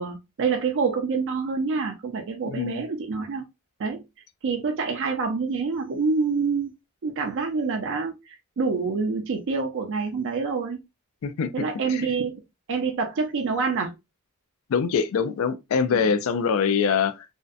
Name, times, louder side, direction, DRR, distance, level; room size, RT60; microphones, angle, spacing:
voice 1, 0.0-3.4 3.8-4.0 4.4-6.7 7.0-10.8 11.5-12.4 12.7-14.0 15.9-16.1, right 4 dB, 60° right, 0.4 m, -27 dB
voice 2, 2.5-2.8 11.2-12.1 14.7-17.2, left 6 dB, 70° left, 0.4 m, -24 dB
2.6 x 2.1 x 2.3 m
head